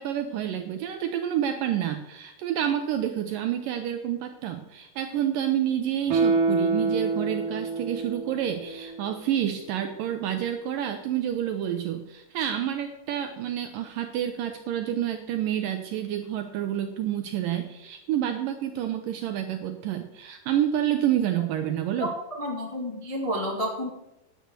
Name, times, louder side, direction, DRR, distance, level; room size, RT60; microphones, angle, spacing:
voice 1, 0.0-22.1, right 10 dB, 80° right, 6 dB, 2.0 m, -29 dB
Guitar, 6.1-9.4 9.7-9.8, right 4 dB, 65° right, 2.6 m, -27 dB
voice 2, 22.0-23.9, equal, 65° left, -2 dB, 0.3 m, -30 dB
10.5 x 8.4 x 6.8 m, 0.91 s
omnidirectional pair, 4.7 m